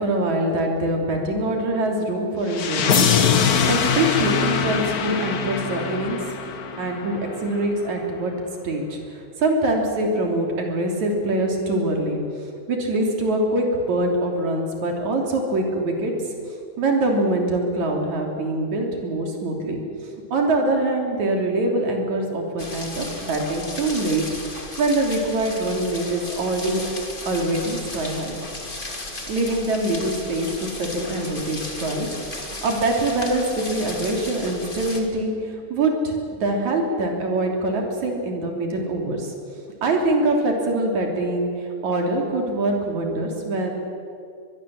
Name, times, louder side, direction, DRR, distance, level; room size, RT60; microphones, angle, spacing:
voice 1, 0.0-3.1 3.3-6.2 6.8-8.3 8.6-12.2 12.7-16.1 16.8-19.8 20.3-26.8 27.2-28.6 29.3-32.1 32.3-39.3 39.8-41.5 41.8-43.7, right 2 dB, 65° right, 1 dB, 4.4 m, -24 dB
sound 1, 2.5-7.4, left 7 dB, 80° left, 0.8 m, -22 dB
sound 2, 22.6-35.0, left 2 dB, 15° left, 2.4 m, -35 dB
23.5 x 21.0 x 7.7 m, 2.4 s
omnidirectional pair, 3.5 m